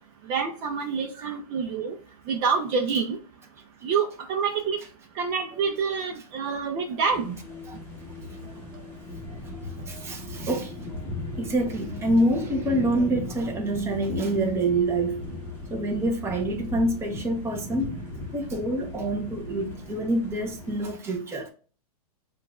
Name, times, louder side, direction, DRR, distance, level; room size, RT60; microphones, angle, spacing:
voice 1, 0.3-1.9 2.3-3.2 3.8-4.8 5.2-7.4, right 5 dB, 40° right, 0.7 m, -27 dB
sound 1, 7.1-20.9, left 2 dB, 10° left, 1.0 m, -38 dB
voice 2, 8.5-8.9 9.3-10.7 11.4-15.2 15.7-18.0 18.3-21.5, right 1 dB, 15° right, 0.9 m, -27 dB
7.3 x 2.5 x 2.4 m
hypercardioid pair, 135°, 20 cm